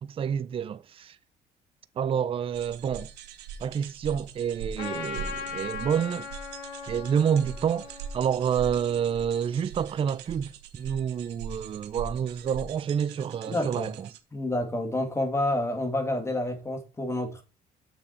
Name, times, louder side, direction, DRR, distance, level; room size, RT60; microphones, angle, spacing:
voice 1, 0.0-1.2 2.0-3.1 3.6-6.3 6.9-14.1, right 8 dB, 35° right, 0.4 m, -28 dB
sound 1, 2.5-14.2, right 6 dB, 85° right, 1.0 m, -42 dB
Trumpet, 4.8-9.4, left 6 dB, 85° left, 1.5 m, -39 dB
voice 2, 13.5-13.9 14.3-17.4, left 1 dB, 15° left, 2.0 m, -29 dB
6.8 x 6.1 x 4.1 m
cardioid pair, 110°, 17 cm